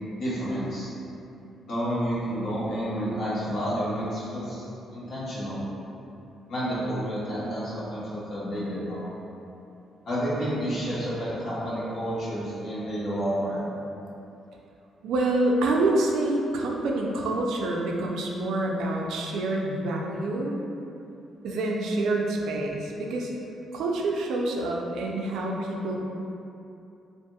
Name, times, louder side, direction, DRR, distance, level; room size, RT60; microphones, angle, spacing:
voice 1, 0.2-0.9 1.7-4.6 4.9-5.6 6.5-9.1 10.0-13.6, equal, 65° left, -10 dB, 1.0 m, -30 dB
voice 2, 15.0-20.5 21.4-23.3 23.7-26.0, right 2 dB, 80° right, -1 dB, 0.3 m, -27 dB
2.8 x 2.5 x 2.2 m, 2.8 s
cardioid pair, 90°, 0 cm